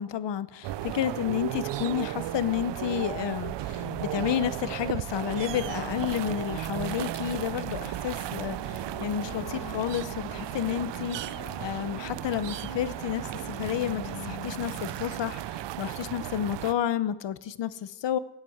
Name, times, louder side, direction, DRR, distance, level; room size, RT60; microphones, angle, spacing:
voice 1, 0.0-18.2, left 10 dB, 85° left, 14 dB, 0.9 m, -31 dB
sound 1, 0.6-16.7, right 13 dB, 85° right, 0.6 m, -35 dB
sound 2, 3.7-16.2, left 7 dB, 55° left, 1.0 m, -46 dB
16.5 x 11.0 x 7.9 m, 1.0 s
wide cardioid pair, 170°, 42 cm